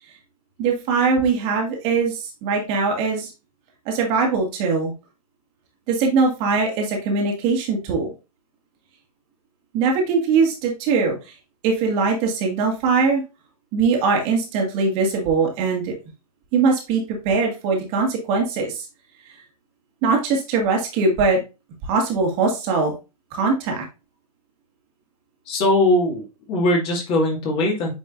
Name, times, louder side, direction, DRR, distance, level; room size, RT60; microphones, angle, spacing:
voice 1, 0.6-3.3 3.9-4.9 5.9-8.1 9.7-11.2 11.6-13.2 13.7-15.9 16.5-18.9 20.0-21.4 21.8-22.9 23.3-23.9, right 4 dB, 30° right, 1 dB, 1.9 m, -21 dB
voice 2, 25.5-27.9, left 1 dB, 25° left, -1 dB, 2.2 m, -20 dB
8.5 x 5.2 x 2.6 m, 0.28 s
figure-of-eight pair, 115°, 20 cm